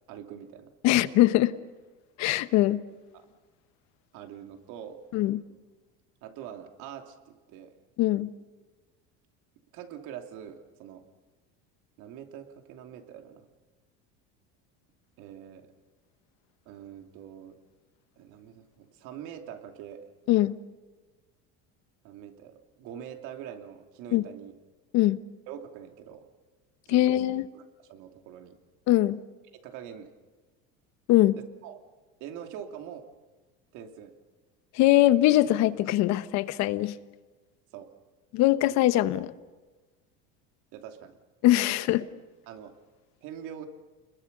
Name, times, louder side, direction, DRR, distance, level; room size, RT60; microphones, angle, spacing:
voice 1, 0.1-0.7 3.2-3.3 4.1-5.0 6.2-7.8 9.7-11.0 12.0-13.4 15.2-15.7 16.7-17.6 18.2-20.0 22.0-24.5 25.5-26.2 26.9-27.2 27.5-27.6 27.9-28.6 29.6-30.1 31.3-31.8 32.2-33.1 33.7-34.1 37.7-37.9 40.7-41.2 42.5-42.7 43.2-43.7, right 9 dB, 65° right, 5 dB, 2.8 m, -44 dB
voice 2, 0.8-1.5 2.2-2.8 5.1-5.4 8.0-8.3 20.3-20.6 24.1-24.2 24.9-25.2 26.9-27.5 28.9-29.2 31.1-31.4 34.7-37.0 38.3-39.3 41.4-42.0, left 15 dB, 60° left, 13 dB, 1.2 m, -22 dB
29.5 x 21.5 x 6.8 m, 1.3 s
cardioid pair, 140°, 32 cm